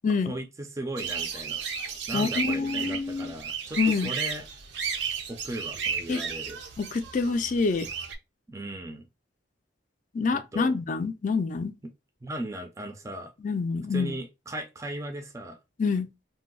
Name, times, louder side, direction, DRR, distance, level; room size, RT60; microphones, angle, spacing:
voice 1, 0.3-1.6 2.1-4.4 5.3-6.6 8.5-9.1 10.5-10.7 12.2-13.3 13.9-15.6, right 1 dB, 15° right, 0.4 m, -37 dB
sound 1, 1.0-8.2, right 6 dB, 70° right, 0.5 m, -33 dB
voice 2, 2.1-3.3 3.8-4.1 6.1-6.2 6.8-7.9 10.1-11.7 13.4-14.1 15.8-16.1, left 4 dB, 45° left, 0.4 m, -27 dB
2.7 x 2.0 x 3.7 m
head